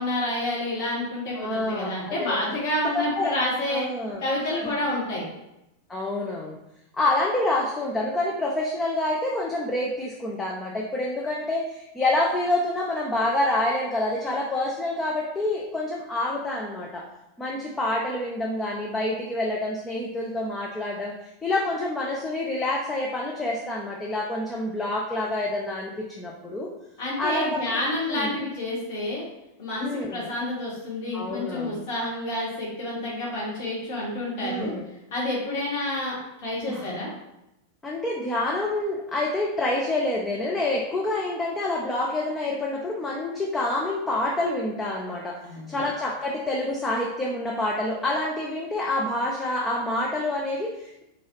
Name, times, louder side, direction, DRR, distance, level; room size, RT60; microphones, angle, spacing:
voice 1, 0.0-3.9 4.2-5.3 27.0-29.2 29.6-34.7 35.1-37.1 45.4-45.8, left 1 dB, 50° left, -5 dB, 1.2 m, -29 dB
voice 2, 1.4-2.4 2.8-3.4 3.7-4.3 4.6-4.7 5.9-6.6 6.9-17.0 17.4-21.1 21.4-26.7 27.2-27.6 28.1-28.3 29.8-30.3 31.1-31.8 34.4-34.9 36.7-36.9 37.8-45.4 45.7-51.0, left 1 dB, 15° left, -2 dB, 0.5 m, -27 dB
3.9 x 2.3 x 3.0 m, 0.88 s
figure-of-eight pair, 90°, 0 cm